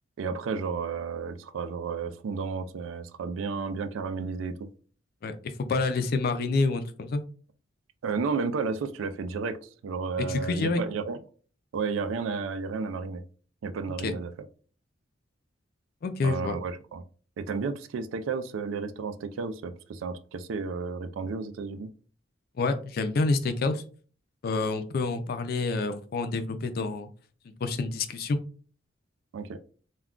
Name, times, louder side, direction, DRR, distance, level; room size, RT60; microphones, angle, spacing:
voice 1, 0.2-4.5 8.0-11.2 11.7-13.2 13.6-14.3 16.2-17.0 17.4-21.9 29.3-29.6, right 5 dB, 85° right, 10 dB, 0.3 m, -32 dB
voice 2, 5.2-7.2 10.2-10.8 14.0-14.1 16.0-16.6 22.6-23.8 24.4-27.1 27.6-28.4, left 3 dB, 50° left, 9 dB, 0.3 m, -28 dB
2.3 x 2.2 x 3.6 m, 0.41 s
head